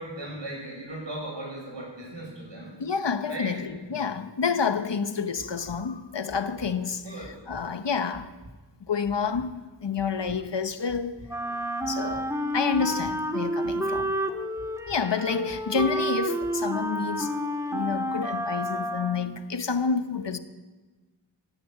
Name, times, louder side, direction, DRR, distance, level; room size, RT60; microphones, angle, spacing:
voice 1, 0.0-2.7 3.3-3.5 7.0-7.4, right 1 dB, 70° right, 6.9 m, -37 dB
voice 2, 2.8-8.3 8.8-11.2 11.9-14.1 14.9-17.3 17.7-20.4, left 5 dB, 65° left, 1.0 m, -29 dB
sound 1, 5.4-5.8 6.3-6.7 7.2-7.6 8.1-8.5 9.0-9.5 10.0-10.4 10.9-11.3 11.8-12.2 12.7-13.1 13.6-14.1 14.6-15.0 15.5-15.9 16.4-16.5, right 1 dB, 85° right, 3.8 m, -47 dB
Wind instrument woodwind instrument, 11.3-19.4, equal, 5° right, 1.8 m, -30 dB
18.0 x 10.0 x 8.0 m
wide cardioid pair, 60°, 45 cm